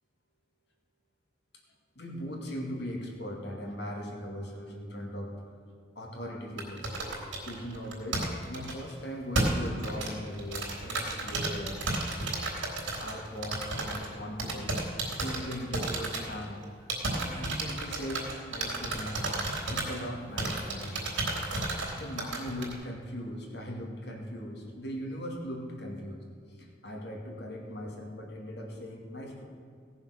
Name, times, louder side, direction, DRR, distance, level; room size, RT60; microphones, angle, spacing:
voice 1, 2.0-5.3 6.0-6.9 7.4-12.0 13.0-14.7 15.0-19.4 19.7-21.4 22.0-26.2 26.5-29.4, equal, 60° left, 0 dB, 2.3 m, -39 dB
sound 1, 6.6-8.9 9.3-14.1 14.4-16.6 16.9-20.1 20.4-22.7, right 2 dB, 80° right, 3.6 m, -32 dB
17.0 x 6.9 x 6.4 m, 2.3 s
head